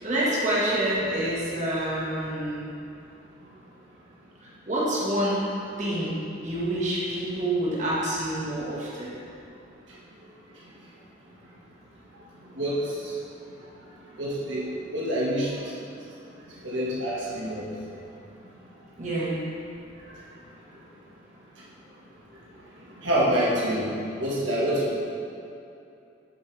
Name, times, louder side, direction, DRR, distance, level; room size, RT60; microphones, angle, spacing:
voice 1, 0.0-2.7 4.4-5.5 5.8-6.1 6.4-9.1 19.0-19.4, right 1 dB, 40° right, -8 dB, 1.7 m, -27 dB
voice 2, 14.2-14.6 14.9-15.5 16.6-17.6 23.0-23.9 24.2-24.9, equal, 75° right, -7 dB, 1.7 m, -26 dB
8.7 x 7.2 x 3.4 m, 2.7 s
head